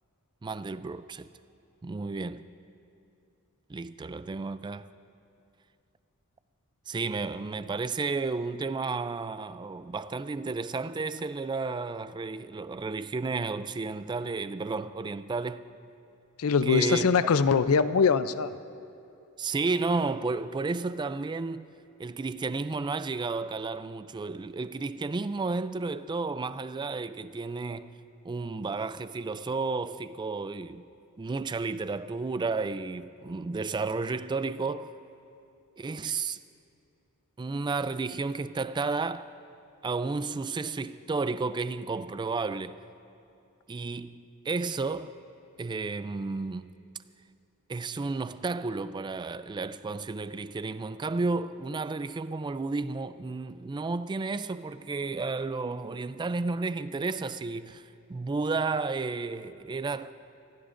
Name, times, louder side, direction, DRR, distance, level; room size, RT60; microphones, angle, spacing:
voice 1, 0.4-1.3 1.8-2.5 3.7-4.9 6.9-15.7 16.6-17.1 19.4-21.7 22.0-28.0 28.2-30.9 31.2-34.9 35.8-36.4 37.4-39.3 39.8-42.8 43.7-45.2 45.6-46.7 47.7-57.8 58.1-60.1, right 3 dB, 20° right, 0.3 m, -32 dB
voice 2, 16.4-18.5, left 5 dB, 70° left, 0.5 m, -23 dB
24.5 x 16.0 x 2.6 m
head